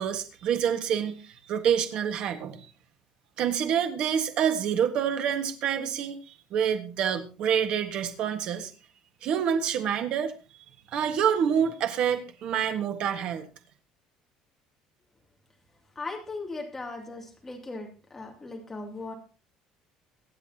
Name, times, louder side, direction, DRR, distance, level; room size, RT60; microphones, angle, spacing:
voice 1, 0.0-2.6 3.4-8.7 9.2-10.3 10.9-13.5, right 8 dB, 45° right, 7 dB, 1.5 m, -27 dB
voice 2, 16.0-19.1, left 3 dB, 10° left, 1 dB, 2.6 m, -38 dB
23.5 x 8.4 x 2.9 m, 0.33 s
cardioid pair, 175°, 2 cm